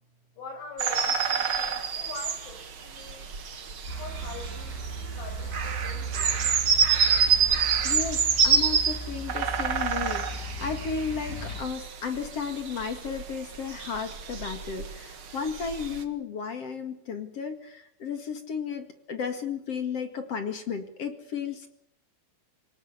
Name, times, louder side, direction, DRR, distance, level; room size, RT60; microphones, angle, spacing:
voice 1, 0.4-3.3 4.0-6.5, left 3 dB, 75° left, 4 dB, 9.6 m, -43 dB
sound 1, 0.8-16.0, right 6 dB, 65° right, 1.2 m, -28 dB
sound 2, 3.9-11.6, right 3 dB, 25° left, 3.1 m, -37 dB
voice 2, 7.8-21.7, left 6 dB, 45° left, 7 dB, 2.1 m, -34 dB
25.0 x 19.0 x 8.3 m, 0.70 s
omnidirectional pair, 5.4 m